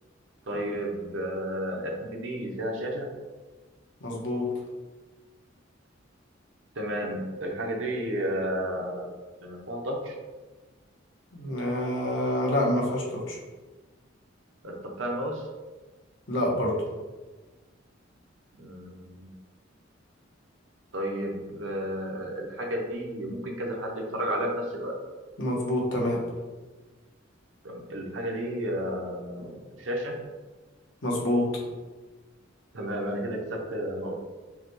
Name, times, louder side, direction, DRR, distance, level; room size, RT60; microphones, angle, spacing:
voice 1, 0.5-3.1 6.8-9.1 9.4-10.2 14.6-15.4 18.5-19.3 20.9-24.9 27.6-30.3 32.7-34.2, equal, 75° right, 0 dB, 0.8 m, -32 dB
voice 2, 4.0-4.5 11.3-13.4 16.3-16.8 25.4-26.2 31.0-31.5, left 1 dB, 70° left, -2 dB, 1.0 m, -27 dB
5.6 x 2.3 x 3.1 m, 1.3 s
head